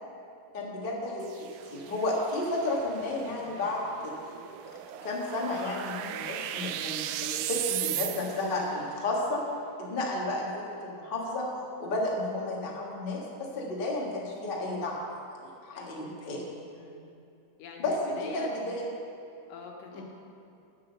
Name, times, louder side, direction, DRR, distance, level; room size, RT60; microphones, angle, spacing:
voice 1, 0.5-4.1 5.0-9.4 9.8-11.5 11.8-16.4 17.8-18.8 19.9-20.0, left 2 dB, 35° left, -3 dB, 0.8 m, -32 dB
sound 1, 1.2-8.6, right 12 dB, 85° right, 1.7 m, -37 dB
voice 2, 15.7-17.2 17.6-18.5 19.5-20.0, left 5 dB, 80° left, 1 dB, 2.8 m, -45 dB
10.5 x 7.7 x 6.8 m, 2.6 s
omnidirectional pair, 3.9 m